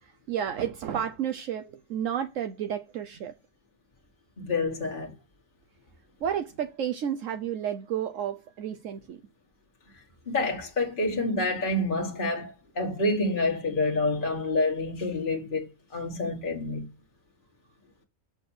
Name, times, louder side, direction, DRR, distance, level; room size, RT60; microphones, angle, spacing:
voice 1, 0.0-3.3 6.2-9.2, right 9 dB, 75° right, 1.1 m, -31 dB
voice 2, 4.4-5.1 10.3-16.9, left 2 dB, 40° left, 1.6 m, -28 dB
7.1 x 6.7 x 6.2 m
omnidirectional pair, 1.4 m